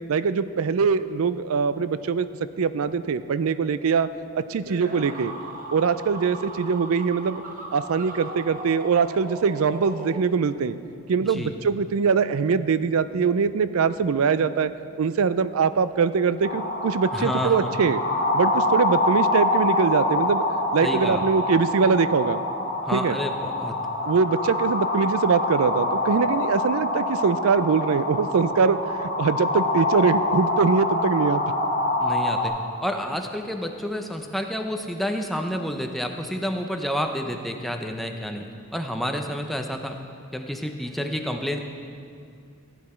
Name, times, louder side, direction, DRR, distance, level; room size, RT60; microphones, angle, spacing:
voice 1, 0.1-2.3 2.6-4.1 4.4-5.3 5.7-7.4 7.7-10.8 11.1-14.7 15.0-18.0 18.3-20.4 20.7-22.4 22.9-23.2 24.1-31.4, right 5 dB, 80° right, 14 dB, 0.4 m, -22 dB
sound 1, 4.7-10.7, right 2 dB, 40° right, 1.1 m, -38 dB
voice 2, 11.2-11.5 17.1-17.8 20.8-21.2 22.8-23.7 32.0-32.5 32.8-38.5 38.7-40.0 40.3-41.6, equal, ahead, 3 dB, 0.6 m, -29 dB
sound 2, 16.4-32.5, left 2 dB, 50° left, 2.4 m, -25 dB
15.5 x 9.5 x 4.4 m, 2.4 s
head